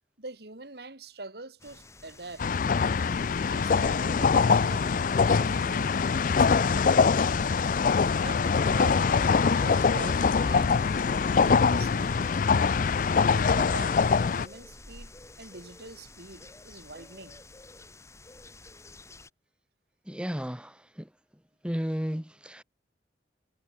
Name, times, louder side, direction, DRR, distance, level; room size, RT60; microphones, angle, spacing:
voice 1, 0.2-2.5 3.4-7.5 8.1-9.2 9.5-10.9 11.3-12.2 13.2-15.1 15.4-17.4, right 2 dB, 60° right, 2.5 m, -44 dB
sound 1, 1.6-19.3, left 2 dB, 15° left, 2.4 m, -49 dB
sound 2, 2.4-14.5, left 5 dB, 50° left, 0.4 m, -23 dB
voice 2, 20.1-21.1 21.6-22.6, equal, 5° right, 1.8 m, -33 dB
head